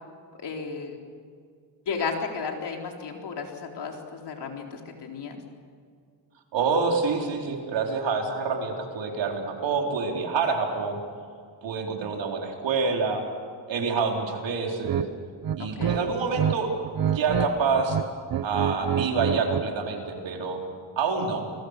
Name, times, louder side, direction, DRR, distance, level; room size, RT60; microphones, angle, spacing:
voice 1, 0.4-1.0 1.9-5.4 15.6-16.0, left 5 dB, 65° left, 1 dB, 4.2 m, -33 dB
voice 2, 6.5-11.0 11.6-13.2 13.7-15.0 15.6-16.7 17.0-18.0 18.4-20.6 21.0-21.5, right 4 dB, 85° right, 1 dB, 4.3 m, -27 dB
sound 1, 14.8-15.1 15.4-16.6 16.8-17.5 17.8-19.7, right 8 dB, 55° right, 1.1 m, -27 dB
29.0 x 21.5 x 6.7 m, 2.1 s
cardioid pair, 105°, 43 cm